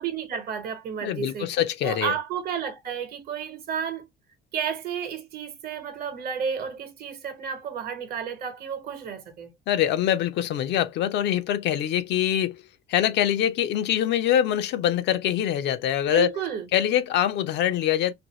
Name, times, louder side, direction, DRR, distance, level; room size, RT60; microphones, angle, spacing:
voice 1, 0.0-1.5 1.8-4.1 4.5-9.5 16.0-16.6, right 7 dB, 55° right, 1.0 m, -32 dB
voice 2, 1.0-2.1 9.7-12.6 12.9-16.3 16.7-18.1, left 10 dB, 70° left, 0.5 m, -24 dB
2.6 x 2.6 x 2.8 m
cardioid pair, 95°, 19 cm